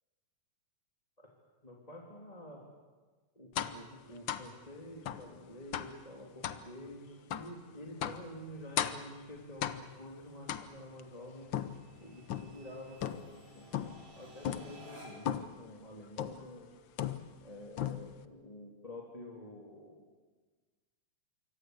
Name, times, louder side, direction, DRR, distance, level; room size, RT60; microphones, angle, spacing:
voice 1, 1.6-2.6 3.3-11.5 12.0-13.8 14.2-16.7 17.4-20.0, left 1 dB, 15° left, -2 dB, 3.0 m, -49 dB
sound 1, 3.5-3.8 4.3-4.5 5.0-5.3 5.7-6.0 6.4-6.6 7.3-7.5 8.0-8.3 8.8-9.1 9.6-10.0 10.5-11.0 11.5-12.6 13.0-13.4 13.7-14.1 14.4-14.7 15.2-15.6 16.2-16.5 17.0-17.5 17.8-18.2, left 10 dB, 80° left, 1.0 m, -37 dB
sound 2, 5.5-15.4, right 1 dB, 45° right, 8.5 m, -59 dB
26.5 x 24.0 x 8.1 m, 1.4 s
omnidirectional pair, 3.4 m